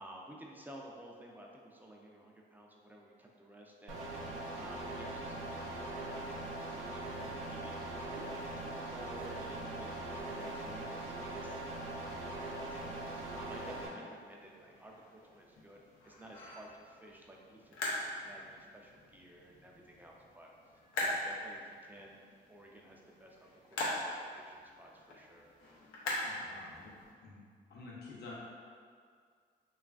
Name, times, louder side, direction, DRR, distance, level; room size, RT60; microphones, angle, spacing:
voice 1, 0.0-11.6 12.7-20.5 21.0-22.2 22.5-25.5, right 1 dB, 10° right, -1 dB, 0.4 m, -54 dB
sound 1, 3.9-13.9, right 2 dB, 90° right, 0.4 m, -41 dB
sound 2, 5.4-10.8, right 2 dB, 50° right, 0.8 m, -60 dB
sound 3, 13.9-27.1, left 1 dB, 90° left, 0.5 m, -42 dB
voice 2, 26.1-27.4 27.7-28.3, left 3 dB, 55° left, -5 dB, 0.7 m, -50 dB
3.0 x 2.4 x 2.3 m, 2.1 s
supercardioid pair, 50°, 20 cm